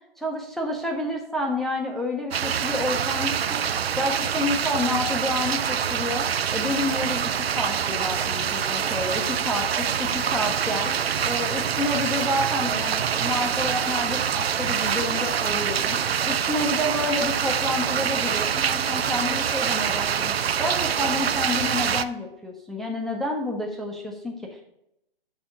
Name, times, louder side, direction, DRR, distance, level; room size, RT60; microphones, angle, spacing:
voice 1, 0.2-3.6 4.0-10.9 11.2-16.0 16.2-24.6, left 1 dB, ahead, -1 dB, 0.4 m, -29 dB
sound 1, 2.3-22.0, right 8 dB, 85° right, 0.5 m, -25 dB
6.5 x 4.2 x 5.8 m, 0.79 s
hypercardioid pair, 130°, 30 cm